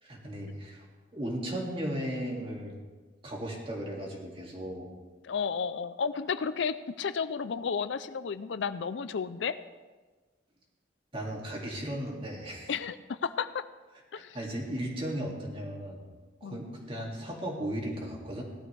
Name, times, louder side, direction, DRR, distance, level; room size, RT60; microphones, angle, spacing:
voice 1, 0.0-0.9 1.1-2.7 3.2-4.9 11.1-12.7 14.1-16.0 16.4-18.4, right 1 dB, 30° right, -1 dB, 2.3 m, -36 dB
voice 2, 5.2-9.6 12.7-13.6 14.1-14.4 16.4-16.6, left 6 dB, 70° left, 13 dB, 0.4 m, -32 dB
17.5 x 12.0 x 3.3 m, 1.3 s
head